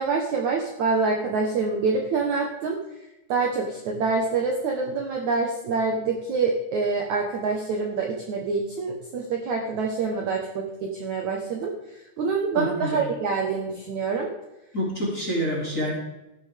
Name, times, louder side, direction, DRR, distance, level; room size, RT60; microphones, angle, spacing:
voice 1, 0.0-2.8 3.3-11.7 12.2-14.3, right 4 dB, 65° right, 1 dB, 2.0 m, -26 dB
voice 2, 12.5-13.0 14.7-15.9, equal, 25° left, -4 dB, 2.5 m, -27 dB
14.5 x 11.5 x 3.5 m, 0.96 s
omnidirectional pair, 4.9 m